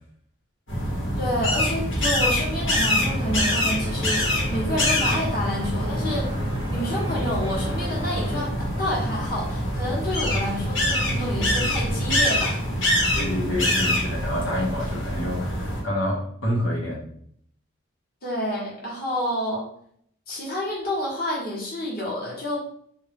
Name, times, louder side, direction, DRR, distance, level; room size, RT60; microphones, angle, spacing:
sound 1, 0.7-15.8, left 1 dB, 75° left, 1.4 m, -25 dB
voice 1, 1.2-6.3 6.7-8.5 8.8-12.6 18.2-19.7 20.3-22.6, equal, 45° left, -5 dB, 1.3 m, -29 dB
sound 2, 2.9-8.5, equal, 25° right, 0.7 m, -36 dB
voice 2, 13.1-17.0, left 1 dB, 90° left, -4 dB, 1.3 m, -28 dB
3.6 x 2.7 x 3.5 m, 0.64 s
head